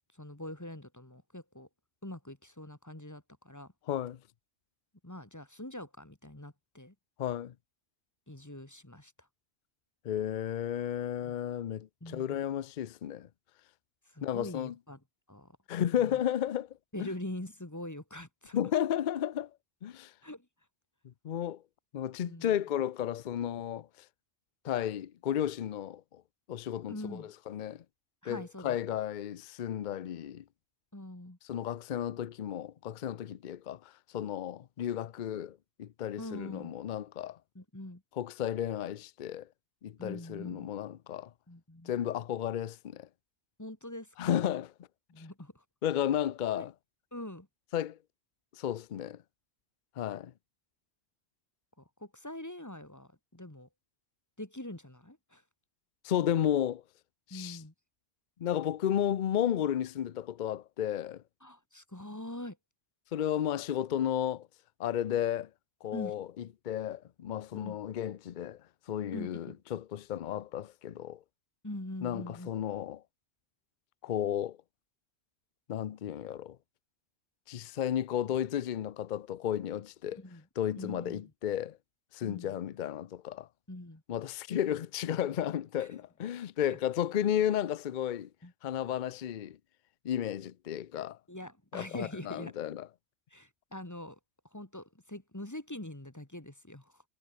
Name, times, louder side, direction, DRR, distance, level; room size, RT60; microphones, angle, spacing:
voice 1, 0.1-1.7 2.0-3.7 5.0-6.9 8.3-9.3 12.0-12.4 14.1-15.0 15.3-15.6 16.0-16.2 16.9-18.6 20.2-20.5 22.2-22.5 26.9-27.3 28.2-28.8 30.9-31.4 36.2-36.7 37.5-38.0 40.0-40.7 41.5-41.9 43.6-44.3 45.1-45.6 46.5-46.7 47.1-47.5 51.8-53.7 54.4-55.4 57.3-57.7 61.4-62.6 65.9-66.2 67.5-67.8 69.1-69.6 71.6-72.5 80.1-80.5 80.8-81.3 82.2-82.6 83.7-84.0 85.8-85.9 86.7-86.8 88.4-88.5 91.3-92.5 93.3-94.2 94.5-97.0, left 1 dB, 15° left, 1.9 m, -44 dB
voice 2, 3.9-4.2 7.2-7.5 10.0-13.3 14.2-14.7 15.7-16.7 17.0-17.1 18.5-19.5 19.8-20.1 21.2-21.6 21.9-23.9 24.6-26.2 26.5-26.9 27.5-27.8 28.3-30.4 31.5-33.8 34.1-37.4 38.2-39.5 39.8-41.3 41.9-43.1 44.2-44.7 45.8-46.7 47.7-48.0 48.6-49.2 50.0-50.3 56.0-56.8 57.3-57.6 58.4-61.2 63.1-64.5 64.8-65.5 65.8-66.3 66.7-68.6 68.9-71.2 72.0-73.0 74.0-74.6 75.7-76.6 77.5-80.2 80.6-81.8 82.1-83.5 84.1-88.3 88.6-89.6 90.0-91.2 91.7-92.9, left 10 dB, 50° left, 0.7 m, -33 dB
omnidirectional pair, 1.2 m